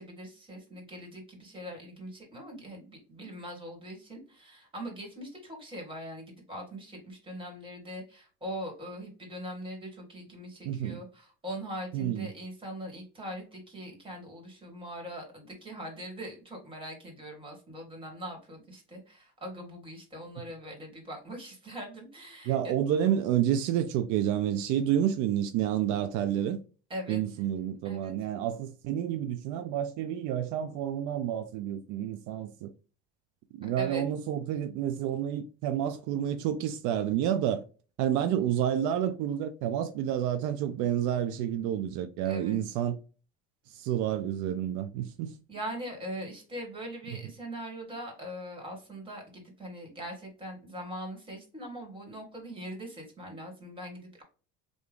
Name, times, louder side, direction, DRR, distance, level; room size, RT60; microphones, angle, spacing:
voice 1, 0.0-22.7 26.9-27.2 27.8-28.1 33.8-34.0 42.2-42.6 45.5-54.2, equal, 15° right, 1.8 m, -41 dB
voice 2, 10.6-11.0 11.9-12.3 22.5-26.6 27.1-32.7 33.5-37.6 38.0-43.0 43.7-45.4 47.1-47.2, right 10 dB, 75° right, 0.5 m, -29 dB
3.4 x 2.5 x 3.5 m
cardioid pair, 125°, 31 cm